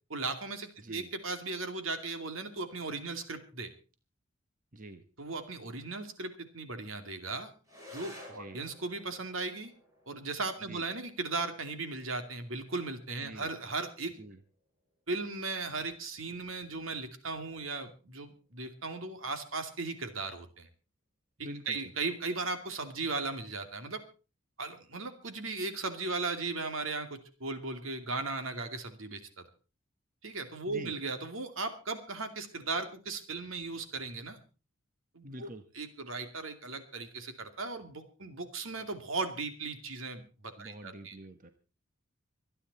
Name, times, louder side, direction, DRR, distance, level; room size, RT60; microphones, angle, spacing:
voice 1, 0.1-3.7 5.2-7.5 7.9-9.7 10.1-14.1 15.1-20.7 21.7-24.0 24.6-29.4 30.2-34.4 35.1-35.5 35.7-41.2, right 3 dB, 80° right, 7 dB, 2.6 m, -37 dB
voice 2, 0.8-1.1 4.7-5.0 8.3-8.6 10.6-10.9 13.2-13.5 14.1-14.4 21.4-21.9 30.7-30.9 35.2-35.6 40.6-41.5, right 1 dB, 40° right, 8 dB, 1.3 m, -46 dB
sound 1, 7.6-16.6, equal, 15° right, 7.1 m, -56 dB
25.5 x 9.8 x 4.2 m, 0.34 s
head